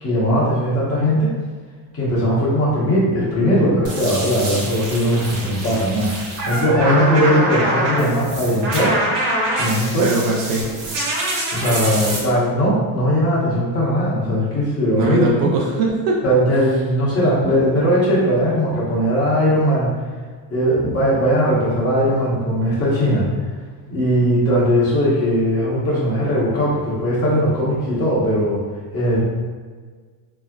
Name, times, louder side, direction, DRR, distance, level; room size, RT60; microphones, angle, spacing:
voice 1, 0.0-1.3 1.9-9.0 9.6-10.1 11.5-15.3 16.2-19.9 20.5-23.3 23.9-28.6 28.9-29.2, equal, 30° left, -7 dB, 1.1 m, -19 dB
sound 1, 3.8-12.2, right 1 dB, 70° right, 1.3 m, -24 dB
voice 2, 10.0-10.7 14.9-16.2, right 3 dB, 55° right, -1 dB, 0.5 m, -20 dB
3.3 x 2.0 x 2.3 m, 1.5 s
supercardioid pair, 110°, 45 cm